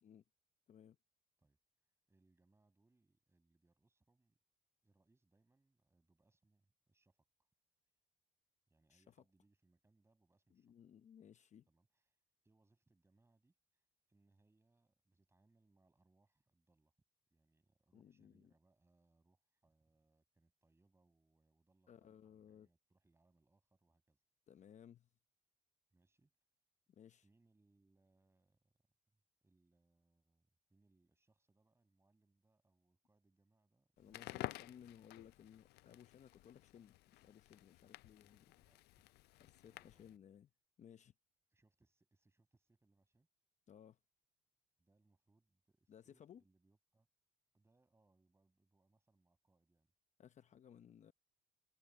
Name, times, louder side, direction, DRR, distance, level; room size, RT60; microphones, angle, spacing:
voice 1, 2.1-4.4 4.8-7.3 8.7-10.7 11.7-12.2 12.4-16.9 17.3-24.2 25.9-26.3 27.2-28.8 29.1-34.8 38.2-39.1 39.5-40.2 41.5-43.3 44.8-47.1 47.5-49.9, right 2 dB, 15° right, 7.2 m, -77 dB
voice 2, 10.5-11.7 17.9-18.5 21.9-22.7 24.5-25.1 26.9-27.3 34.0-38.5 39.3-40.5 40.8-41.1 43.7-44.0 45.9-46.4 50.2-51.1, left 9 dB, 45° left, 0.8 m, -60 dB
Crackle, 34.0-40.2, left 18 dB, 75° left, 0.4 m, -52 dB
cardioid pair, 110°, 17 cm